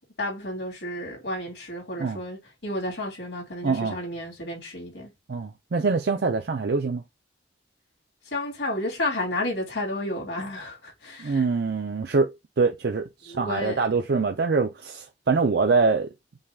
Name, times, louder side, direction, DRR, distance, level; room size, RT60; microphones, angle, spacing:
voice 1, 0.2-5.1 8.3-11.4 13.3-13.8, left 1 dB, 80° left, 2.5 m, -31 dB
voice 2, 3.6-4.0 5.3-7.0 11.2-12.3 12.6-16.1, right 4 dB, 60° right, 0.5 m, -24 dB
5.5 x 2.3 x 3.5 m
head